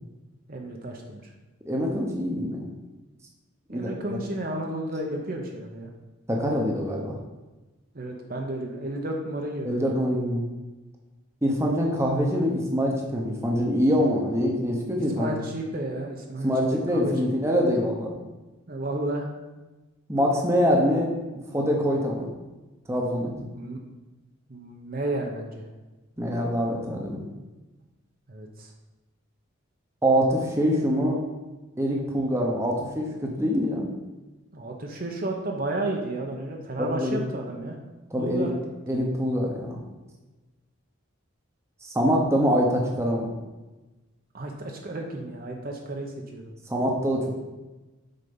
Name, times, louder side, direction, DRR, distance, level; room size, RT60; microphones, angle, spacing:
voice 1, 0.5-1.3 3.7-5.9 7.9-9.8 14.9-16.5 16.9-17.3 18.7-19.3 23.5-23.8 24.5-25.6 28.3-28.7 34.5-37.8 38.2-38.6 38.9-39.1 44.3-46.4, right 1 dB, 40° right, 1 dB, 0.8 m, -32 dB
voice 2, 1.6-2.6 3.7-4.2 6.3-7.2 9.6-10.4 11.4-15.3 16.4-18.1 20.1-21.1 21.5-22.3 22.9-23.3 26.2-27.2 30.0-31.2 31.8-33.1 33.4-33.9 36.9-37.2 38.1-38.5 38.9-39.8 41.8-43.3 46.7-47.3, equal, 15° right, -1 dB, 1.0 m, -24 dB
7.8 x 4.5 x 5.4 m, 1.1 s
head